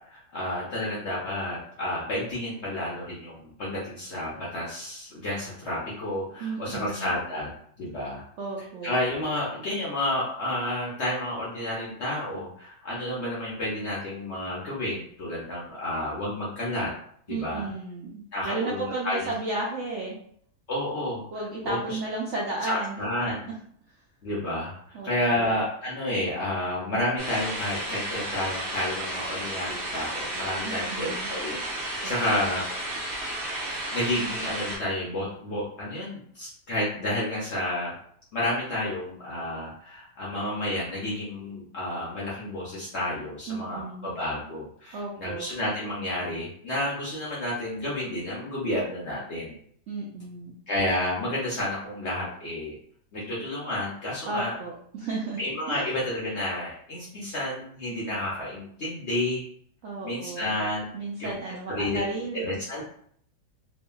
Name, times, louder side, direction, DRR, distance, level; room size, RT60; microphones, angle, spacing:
voice 1, 0.0-7.5 7.8-8.2 8.8-16.9 17.3-17.7 18.3-19.3 20.7-21.2 21.6-22.0 22.6-23.5 24.2-32.7 33.9-37.9 38.3-49.5 50.7-52.7 53.1-54.5 55.4-59.4 60.0-61.3 61.7-62.0 62.3-62.8, left 1 dB, 65° left, -6 dB, 0.7 m, -30 dB
voice 2, 6.4-7.1 8.4-8.9 17.3-20.2 21.3-23.0 24.9-25.5 30.6-31.3 32.0-32.1 32.4-32.6 43.5-44.1 44.9-45.5 49.9-50.5 54.3-55.4 55.7-55.8 59.8-60.5 60.9-62.4, right 3 dB, 75° right, -4 dB, 0.6 m, -33 dB
sound 1, 27.2-34.8, right 1 dB, 45° right, 0.9 m, -33 dB
2.7 x 2.4 x 2.2 m, 0.62 s
omnidirectional pair, 1.8 m